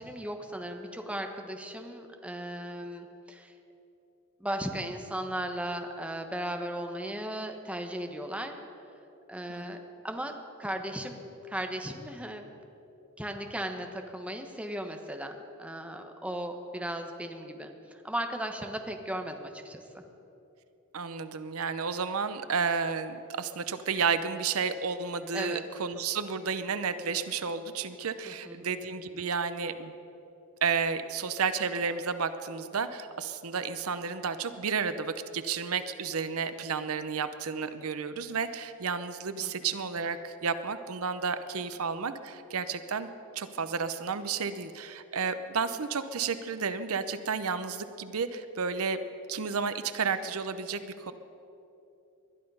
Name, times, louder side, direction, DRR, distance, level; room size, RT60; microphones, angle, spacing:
voice 1, 0.0-3.5 4.4-8.5 9.3-9.8 10.0-10.3 10.6-11.2 11.5-12.5 13.2-17.7 18.0-20.0 25.3-25.7 28.2-28.7 39.4-39.5, right 1 dB, 5° right, 4 dB, 1.0 m, -36 dB
voice 2, 9.5-9.8 20.9-29.9 30.6-43.1 43.3-49.0 49.3-51.1, right 5 dB, 70° right, 11 dB, 0.7 m, -32 dB
20.5 x 12.0 x 5.5 m, 2.9 s
head